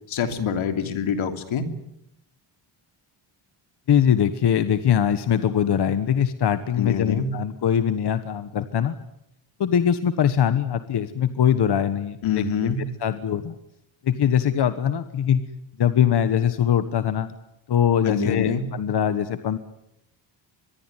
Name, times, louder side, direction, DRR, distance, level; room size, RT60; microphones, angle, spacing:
voice 1, 0.1-1.7 6.8-7.3 12.2-12.9 18.0-18.6, left 6 dB, 80° left, 7 dB, 3.1 m, -25 dB
voice 2, 3.9-8.9 9.6-12.7 13.0-13.6 14.0-15.4 15.8-17.3 17.7-19.6, left 9 dB, 55° left, 11 dB, 1.3 m, -22 dB
24.5 x 22.0 x 9.2 m, 0.80 s
wide cardioid pair, 145°, 47 cm